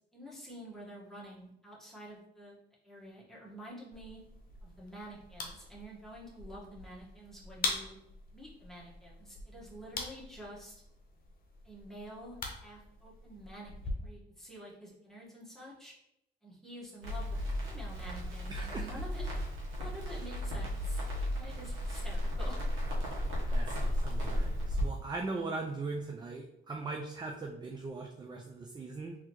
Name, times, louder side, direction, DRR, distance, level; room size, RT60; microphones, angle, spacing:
voice 1, 0.1-2.6 2.8-4.2 4.6-8.0 8.3-10.8 11.6-15.9 16.4-17.3 17.6-19.2 19.7-21.0 21.3-22.6, equal, ahead, -6 dB, 1.4 m, -48 dB
sound 1, 3.9-13.9, left 3 dB, 45° left, 0.9 m, -43 dB
Crackle, 17.0-24.8, equal, 90° right, 1.2 m, -34 dB
voice 2, 18.5-18.9 23.5-29.2, right 3 dB, 20° right, 1 dB, 0.4 m, -40 dB
3.8 x 2.9 x 3.0 m, 0.84 s
cardioid pair, 90°, 20 cm